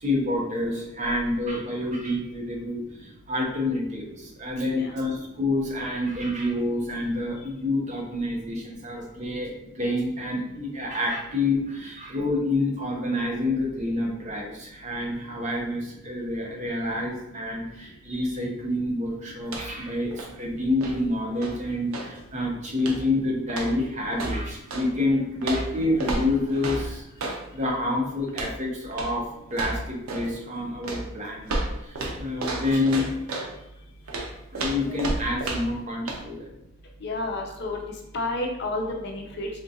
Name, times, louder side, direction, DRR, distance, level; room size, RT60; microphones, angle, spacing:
voice 1, 0.0-9.5 9.7-31.5 31.8-33.1 34.2-36.5, left 2 dB, 30° right, -1 dB, 0.6 m, -28 dB
sound 1, 19.4-19.9 20.1-22.2 22.8-23.2 23.5-24.9 25.4-27.4 28.3-28.6 28.9-29.2 29.5-30.3 30.8-33.5 34.1-35.8 36.1-36.2, right 2 dB, 80° right, 0.6 m, -32 dB
voice 2, 37.0-37.8 38.1-39.5, left 2 dB, 50° left, 1 dB, 0.5 m, -30 dB
3.6 x 2.4 x 2.7 m, 0.88 s
head